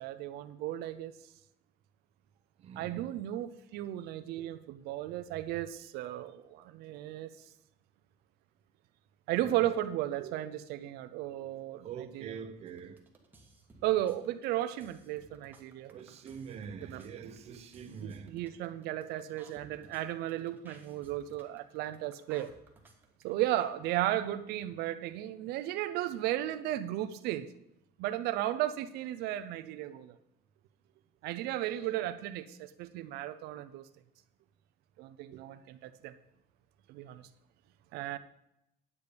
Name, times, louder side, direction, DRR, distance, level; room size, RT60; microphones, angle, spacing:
voice 1, 0.0-1.3 2.8-7.3 9.3-11.9 12.1-12.3 13.8-15.9 16.8-17.0 18.0-22.5 23.2-27.5 28.0-30.2 31.2-33.9 35.0-36.1 36.9-37.3 37.9-38.2, right 13 dB, 75° right, 0.6 m, -35 dB
voice 2, 2.6-3.1 9.4-9.6 11.8-13.0 15.9-18.3, right 7 dB, 40° right, 0.8 m, -44 dB
sound 1, 12.7-23.6, right 2 dB, 10° right, 1.3 m, -58 dB
10.0 x 8.3 x 5.1 m
cardioid pair, 175°, 17 cm